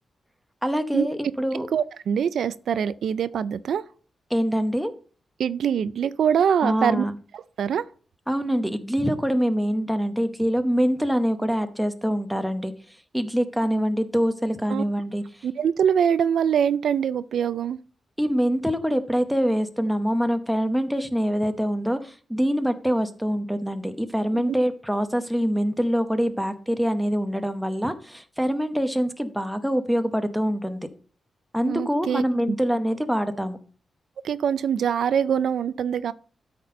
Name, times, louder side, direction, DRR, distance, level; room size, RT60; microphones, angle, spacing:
voice 1, 0.6-1.7 4.3-4.9 6.6-7.1 8.3-12.7 13.1-15.2 18.2-30.9 31.5-33.6, equal, ahead, 0.8 m, -24 dB
voice 2, 1.7-3.8 5.4-7.1 7.3-7.8 14.7-14.8 15.4-17.8 31.6-32.2 34.2-36.1, right 8 dB, 80° right, 0.3 m, -23 dB
12.5 x 4.3 x 5.2 m
wide cardioid pair, 140°, 0 cm